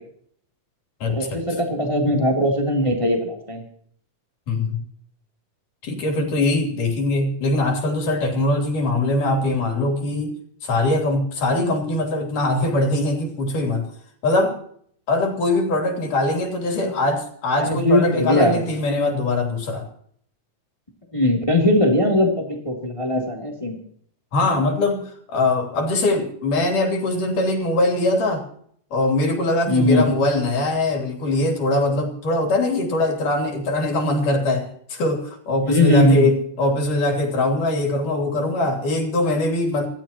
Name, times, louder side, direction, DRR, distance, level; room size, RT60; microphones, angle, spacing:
voice 1, 1.2-3.6 16.8-16.9 17.6-18.6 21.1-23.8 29.7-30.1 35.7-36.4, left 1 dB, 10° left, 0 dB, 2.6 m, -20 dB
voice 2, 4.5-4.8 5.8-10.4 10.6-13.9 14.2-14.6 15.1-19.8 24.3-28.4 28.9-39.9, left 2 dB, 80° left, 1 dB, 4.9 m, -22 dB
28.5 x 14.0 x 3.0 m, 0.62 s
omnidirectional pair, 3.6 m